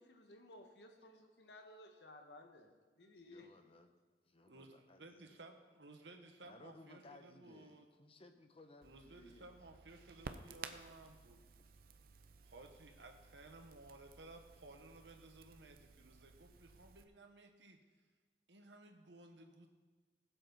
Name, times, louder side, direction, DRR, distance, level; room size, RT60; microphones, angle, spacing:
voice 1, 0.0-3.5, left 1 dB, 70° left, 4 dB, 1.5 m, -58 dB
voice 2, 3.2-3.9 4.2-5.4 6.4-9.5, left 2 dB, 35° left, 7 dB, 0.9 m, -61 dB
voice 3, 4.5-7.9 8.8-11.4 12.4-17.8 18.5-19.7, right 2 dB, 85° right, 5 dB, 1.4 m, -58 dB
Crackle, 8.8-17.0, right 5 dB, 55° right, 0.7 m, -55 dB
20.0 x 7.8 x 4.1 m, 1.4 s
head